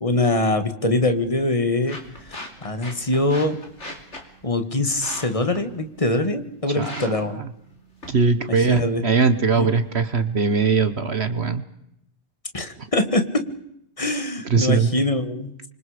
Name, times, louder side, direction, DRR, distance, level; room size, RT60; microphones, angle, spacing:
voice 1, 0.0-2.0 2.3-3.6 4.4-7.4 8.6-9.0 9.5-9.7 12.5-13.5 14.0-15.7, left 2 dB, 25° left, 8 dB, 2.0 m, -23 dB
sound 1, 0.9-10.9, left 1 dB, 60° left, 3.5 m, -42 dB
voice 2, 8.1-11.6 12.8-12.9 14.5-14.9, right 4 dB, 55° right, 11 dB, 1.4 m, -21 dB
28.0 x 25.0 x 5.1 m, 0.76 s
omnidirectional pair, 1.3 m